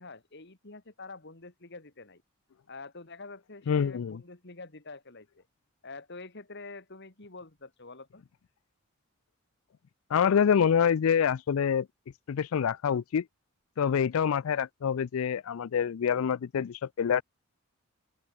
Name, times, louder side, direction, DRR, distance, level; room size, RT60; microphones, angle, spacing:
voice 1, 0.0-2.2 2.7-5.3 5.8-8.2, left 3 dB, 50° left, 2.2 m, -46 dB
voice 2, 3.7-4.2 10.1-11.9 12.3-13.2 13.8-17.2, left 7 dB, 70° left, 0.4 m, -26 dB
open air
head